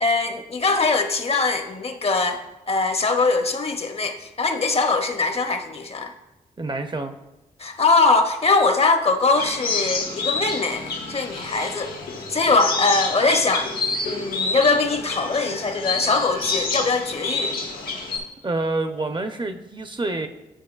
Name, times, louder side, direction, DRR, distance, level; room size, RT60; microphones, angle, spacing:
voice 1, 0.0-6.1 7.6-11.9 12.3-13.7 14.0-17.5, left 3 dB, 40° left, 6 dB, 0.7 m, -22 dB
voice 2, 6.6-7.1 18.4-20.3, right 2 dB, 30° right, 8 dB, 0.6 m, -27 dB
sound 1, 9.3-18.2, left 3 dB, 80° left, 1.0 m, -28 dB
8.8 x 5.0 x 2.3 m, 0.99 s
supercardioid pair, 50°, 15 cm